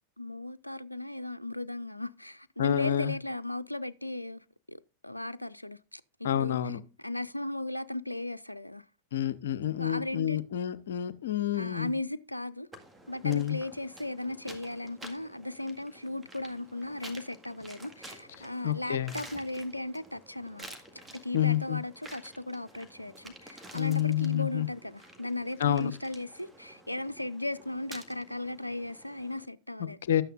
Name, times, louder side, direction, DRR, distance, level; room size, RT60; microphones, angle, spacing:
voice 1, 0.2-8.9 9.8-10.4 11.5-12.7 13.1-20.7 20.9-30.0, left 2 dB, 85° left, 0.4 m, -37 dB
voice 2, 2.6-3.1 6.2-6.8 9.1-11.9 13.2-13.6 18.4-19.1 21.3-21.8 23.7-24.7 25.6-25.9 30.1-30.2, left 10 dB, 60° left, 0.7 m, -28 dB
sound 1, 12.7-29.5, right 1 dB, 15° right, 1.8 m, -51 dB
12.5 x 9.0 x 2.5 m
figure-of-eight pair, 90°, 0 cm